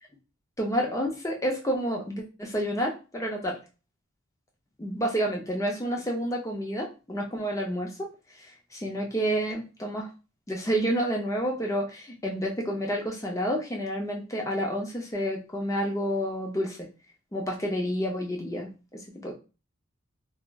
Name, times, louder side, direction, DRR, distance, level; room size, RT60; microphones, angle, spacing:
voice 1, 0.6-3.6 4.8-8.1 8.4-10.1 10.5-16.8 17.3-19.3, equal, 15° left, 0 dB, 0.5 m, -29 dB
2.4 x 2.0 x 3.4 m, 0.32 s
head